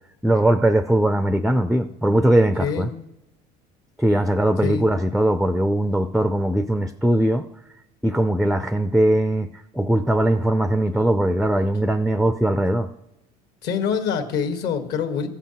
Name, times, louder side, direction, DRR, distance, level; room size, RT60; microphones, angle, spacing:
voice 1, 0.2-2.9 4.0-7.5 8.0-9.5 9.7-12.9, right 1 dB, ahead, 11 dB, 0.4 m, -20 dB
voice 2, 13.6-15.3, left 6 dB, 65° left, 7 dB, 1.7 m, -25 dB
14.5 x 7.2 x 5.7 m, 0.94 s
supercardioid pair, 115°, 19 cm